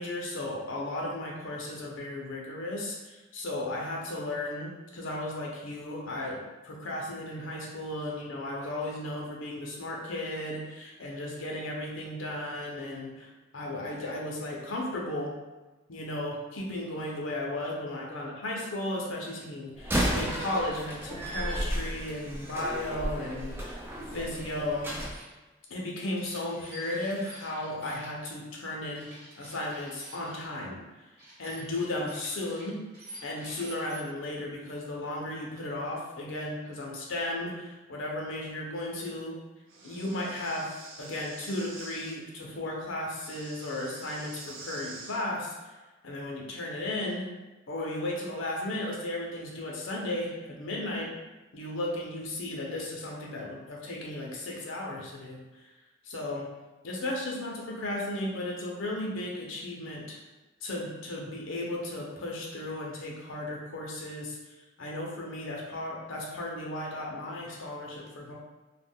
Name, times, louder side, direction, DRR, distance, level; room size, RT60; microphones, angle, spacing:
voice 1, 0.0-15.3 15.9-23.8 24.1-24.9 25.7-29.1 29.4-30.8 31.4-32.8 33.2-39.4 39.8-40.7 41.0-45.7 46.0-47.3 47.7-51.1 51.5-55.7 56.0-56.5 56.8-60.2 60.6-64.4 64.8-68.3, left 1 dB, 80° left, -2 dB, 0.7 m, -35 dB
Slam, 19.8-25.1, equal, 10° right, 0.3 m, -33 dB
sound 1, 25.1-25.3 26.2-28.1 28.9-30.5 31.2-34.0, right 1 dB, 50° right, 1.2 m, -48 dB
Breathing, 39.7-42.2 43.1-45.2, right 3 dB, 80° right, 0.5 m, -46 dB
2.4 x 2.2 x 3.5 m, 1.1 s
head